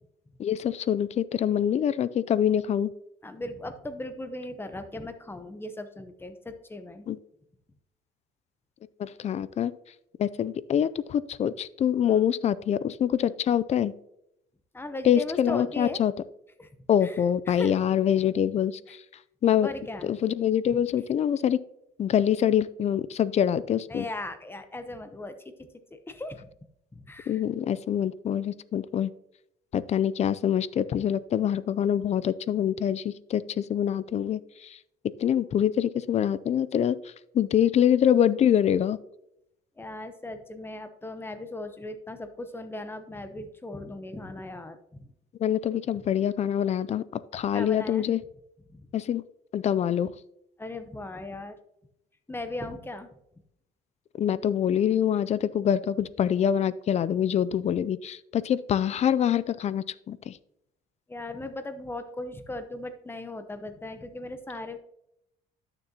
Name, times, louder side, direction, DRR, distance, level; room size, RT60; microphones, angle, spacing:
voice 1, 0.4-2.9 7.1-7.2 9.0-9.7 10.2-13.9 15.0-16.1 16.9-19.0 19.4-19.7 20.0-21.6 22.0-24.1 27.3-29.1 29.7-34.8 35.2-39.0 45.4-48.2 48.9-49.2 49.5-50.1 54.2-60.4, left 9 dB, 40° left, 17 dB, 0.4 m, -25 dB
voice 2, 3.2-7.1 12.1-12.2 14.7-16.0 16.6-17.7 19.6-20.1 23.9-26.5 26.9-27.4 39.8-45.1 47.5-48.1 48.7-48.8 50.6-51.6 52.3-53.1 61.1-64.8, left 2 dB, 15° left, 9 dB, 0.8 m, -38 dB
11.5 x 6.7 x 2.9 m, 0.80 s
cardioid pair, 110°, 17 cm